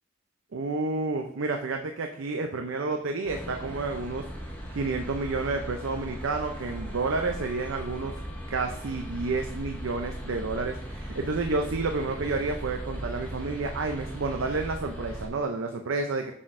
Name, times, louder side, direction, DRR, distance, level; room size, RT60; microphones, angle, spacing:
voice 1, 0.5-4.2 4.7-8.1 8.5-16.3, right 3 dB, 65° right, 4 dB, 0.5 m, -30 dB
sound 1, 3.2-15.3, equal, 10° left, 0.9 m, -38 dB
7.4 x 6.1 x 2.5 m, 0.74 s
head